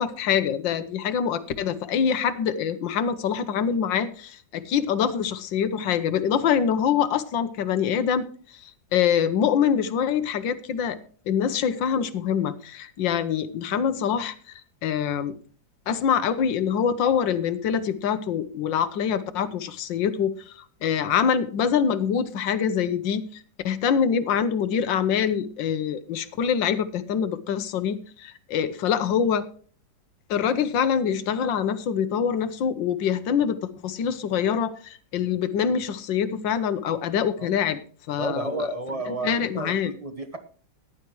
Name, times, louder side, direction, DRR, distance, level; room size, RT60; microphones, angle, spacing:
voice 1, 0.0-8.3 8.6-11.0 11.3-14.3 14.8-15.4 15.9-20.5 20.8-29.5 30.3-33.6 33.8-37.8 38.1-38.7 39.2-39.9, left 8 dB, 80° left, 12 dB, 1.6 m, -25 dB
voice 2, 38.2-40.4, right 2 dB, 25° right, 8 dB, 0.8 m, -31 dB
14.5 x 10.5 x 3.1 m, 0.43 s
omnidirectional pair, 2.0 m